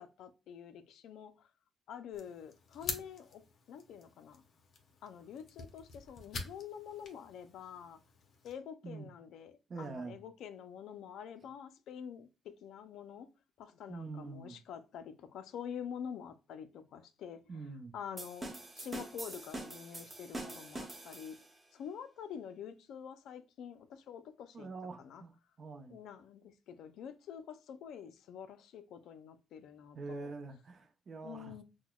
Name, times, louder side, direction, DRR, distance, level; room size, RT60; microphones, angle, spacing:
voice 1, 0.0-1.5 1.9-3.4 3.7-4.4 5.0-8.0 8.4-13.3 13.6-17.4 17.9-21.4 21.7-24.7 25.0-25.2 25.9-30.3 31.2-31.6, left 8 dB, 80° left, 0.4 m, -47 dB
sound 1, 2.1-8.5, left 4 dB, 55° left, 0.7 m, -47 dB
voice 2, 9.7-10.2 13.9-14.6 17.5-17.9 24.5-25.3 25.6-26.0 29.9-31.5, right 4 dB, 50° right, 0.6 m, -44 dB
sound 2, 18.2-21.6, right 2 dB, 25° right, 1.0 m, -44 dB
5.9 x 2.1 x 2.2 m
cardioid pair, 90°, 0 cm